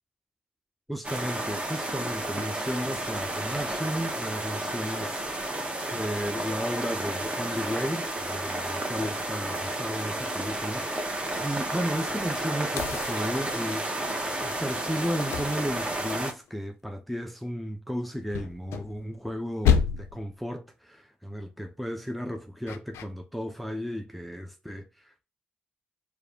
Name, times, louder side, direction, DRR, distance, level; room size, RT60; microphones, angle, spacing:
voice 1, 0.9-5.2 5.8-13.9 14.4-25.3, equal, ahead, 0.6 m, -34 dB
sound 1, 1.0-16.3, right 1 dB, 25° right, 1.1 m, -32 dB
sound 2, 12.8-14.0 15.3-16.5 18.3-19.3 19.6-20.3 22.7-23.0, left 7 dB, 75° left, 0.4 m, -29 dB
4.6 x 2.3 x 2.8 m
hypercardioid pair, 40°, 4 cm